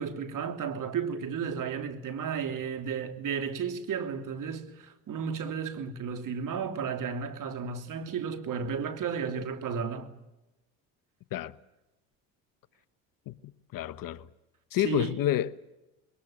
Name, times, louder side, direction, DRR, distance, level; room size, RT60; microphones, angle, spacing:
voice 1, 0.0-10.1 14.8-15.2, right 6 dB, 55° right, 3.2 m, -33 dB
voice 2, 13.7-14.3 14.7-15.7, left 12 dB, 60° left, 1.0 m, -29 dB
21.5 x 20.0 x 8.9 m
supercardioid pair, 80°, 39 cm